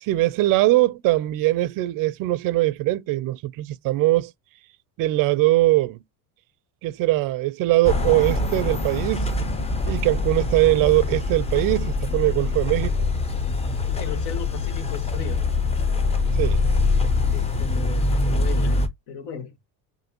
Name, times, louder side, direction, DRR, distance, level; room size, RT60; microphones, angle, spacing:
voice 1, 0.0-4.3 5.0-6.0 6.8-9.3 9.9-12.9 16.4-16.6, right 17 dB, 50° right, 0.5 m, -21 dB
sound 1, 7.8-18.9, left 3 dB, 15° left, 0.7 m, -24 dB
voice 2, 13.8-15.4 17.3-19.5, left 7 dB, 70° left, 1.6 m, -36 dB
5.3 x 2.7 x 2.9 m
cardioid pair, 125°, 42 cm